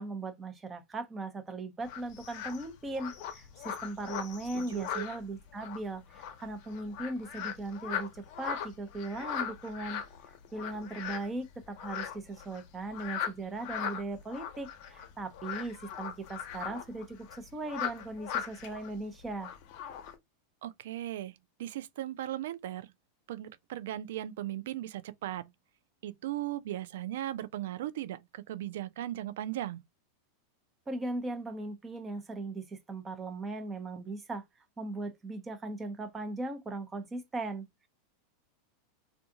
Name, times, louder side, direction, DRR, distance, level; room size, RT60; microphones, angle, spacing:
voice 1, 0.0-8.1 8.4-10.0 10.5-19.5 30.9-34.4 34.8-37.7, right 2 dB, 20° right, 0.7 m, -38 dB
sound 1, 1.8-20.1, left 8 dB, 55° left, 0.7 m, -40 dB
voice 2, 4.5-5.1 20.6-22.9 23.3-25.5 26.0-29.8, right 13 dB, 70° right, 0.3 m, -37 dB
2.4 x 2.3 x 2.7 m
hypercardioid pair, 100°, 0 cm